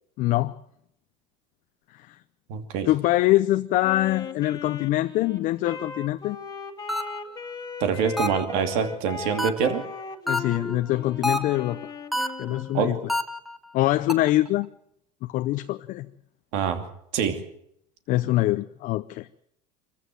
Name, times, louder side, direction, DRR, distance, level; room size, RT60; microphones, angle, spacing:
voice 1, 0.2-0.5 1.9-2.1 2.9-6.4 10.3-11.8 12.4-13.0 13.7-14.7 15.2-16.1 18.1-19.3, left 16 dB, 55° left, 9 dB, 0.7 m, -24 dB
voice 2, 2.5-2.9 7.8-9.8 12.7-12.9 16.5-16.8 17.1-17.4, right 7 dB, 70° right, 6 dB, 2.7 m, -25 dB
Wind instrument woodwind instrument, 3.8-12.8, left 5 dB, 25° left, 2.0 m, -38 dB
sound 1, 6.9-7.4 8.2-8.6 9.4-9.8 10.3-10.7 11.2-11.7 12.1-12.6 13.1-13.6 14.1-14.5, left 2 dB, ahead, 1.2 m, -28 dB
24.5 x 14.5 x 7.7 m, 0.74 s
supercardioid pair, 105°, 16 cm